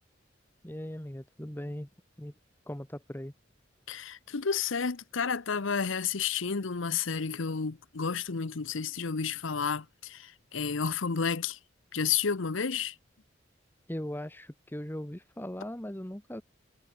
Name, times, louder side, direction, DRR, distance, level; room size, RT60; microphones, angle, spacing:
voice 1, 0.6-1.9 2.2-2.3 2.7-3.3 13.9-16.4, equal, 10° left, 1.3 m, -39 dB
voice 2, 3.9-11.6 11.9-12.9, left 6 dB, 85° left, 0.9 m, -31 dB
head